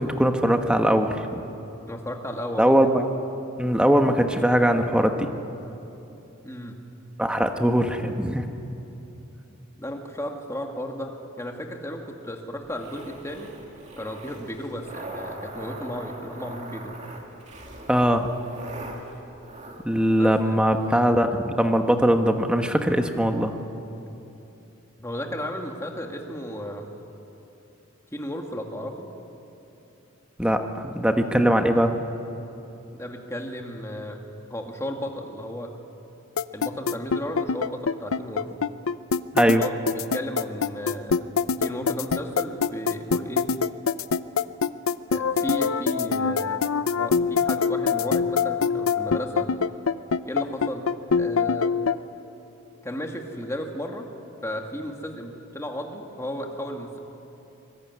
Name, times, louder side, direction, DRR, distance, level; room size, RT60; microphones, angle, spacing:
voice 1, 0.0-1.4 2.6-3.1 3.6-5.3 7.2-8.5 17.9-18.3 19.8-23.5 30.4-32.0 39.3-39.6, equal, 5° right, 5 dB, 1.3 m, -21 dB
voice 2, 1.9-2.8 6.4-6.8 9.8-13.5 14.0-17.0 20.2-20.6 25.0-26.9 28.1-29.1 32.9-34.2 34.5-35.7 36.5-38.5 39.4-41.3 41.6-43.5 45.1-46.7 46.9-49.5 50.2-50.9 51.1-51.8 52.8-54.1 54.4-57.0, equal, 15° left, 2 dB, 2.2 m, -34 dB
sound 1, 12.6-21.1, right 1 dB, 35° right, 2.7 m, -42 dB
sound 2, 36.4-52.0, left 5 dB, 85° left, 0.6 m, -23 dB
24.5 x 22.0 x 9.6 m, 2.9 s
head